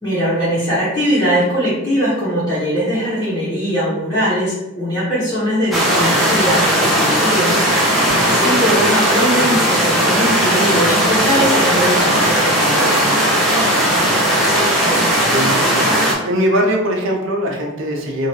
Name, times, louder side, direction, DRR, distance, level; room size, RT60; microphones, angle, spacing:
voice 1, 0.0-7.5 8.2-13.2, equal, 20° left, -14 dB, 1.3 m, -20 dB
sound 1, 5.7-16.1, right 1 dB, ahead, 0.6 m, -16 dB
voice 2, 15.2-18.3, equal, 85° right, 0 dB, 0.7 m, -21 dB
2.8 x 2.8 x 3.1 m, 0.94 s
head